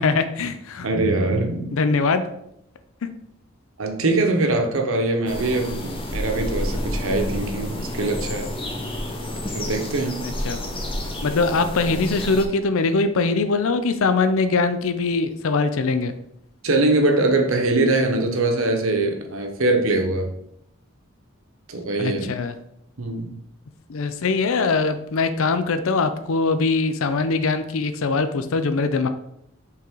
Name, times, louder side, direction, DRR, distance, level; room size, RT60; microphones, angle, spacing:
voice 1, 0.0-0.9 1.7-2.2 10.2-10.6 11.2-16.1 22.0-22.5 23.9-29.1, left 4 dB, 70° left, 10 dB, 0.5 m, -22 dB
voice 2, 0.8-1.7 3.8-8.5 9.5-10.2 16.6-20.3 21.7-22.3 23.0-23.3, right 2 dB, 70° right, 4 dB, 1.0 m, -22 dB
sound 1, 5.3-12.4, left 1 dB, 25° left, 0.8 m, -30 dB
5.7 x 3.9 x 4.6 m, 0.76 s
head